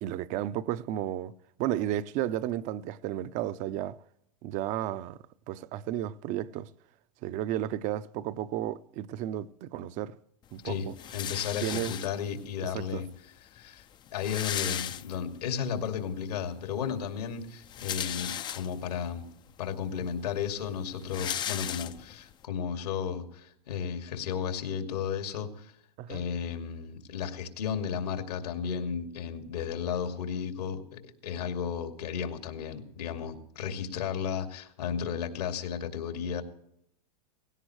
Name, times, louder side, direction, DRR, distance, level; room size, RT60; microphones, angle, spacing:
voice 1, 0.0-1.3 1.6-4.0 4.4-5.2 5.5-6.7 7.2-10.1 10.5-10.9 11.6-11.9 12.6-13.0 26.0-26.2, right 12 dB, 40° right, 0.7 m, -33 dB
voice 2, 10.6-13.1 13.5-13.8 14.1-19.2 19.6-25.7 26.1-36.4, left 7 dB, 80° left, 2.5 m, -34 dB
sound 1, 11.0-12.4 13.3-13.4 13.6-13.7 13.9-15.5 16.0-16.1 17.5-19.0 19.6-19.7 20.0-22.3, left 10 dB, 20° left, 0.5 m, -36 dB
18.0 x 16.5 x 3.2 m
hypercardioid pair, 125°, 20 cm